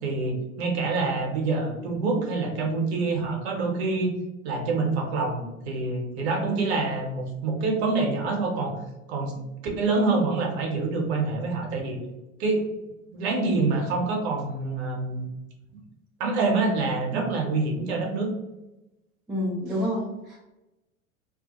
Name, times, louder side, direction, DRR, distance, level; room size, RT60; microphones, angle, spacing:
voice 1, 0.0-4.1 4.4-8.8 9.1-9.4 9.8-12.0 12.4-12.7 13.1-15.2 16.2-18.3, right 3 dB, 50° right, 1 dB, 0.8 m, -26 dB
voice 2, 19.3-20.4, equal, ahead, -6 dB, 0.3 m, -28 dB
2.2 x 2.1 x 2.9 m, 0.97 s
figure-of-eight pair, 85°, 40 cm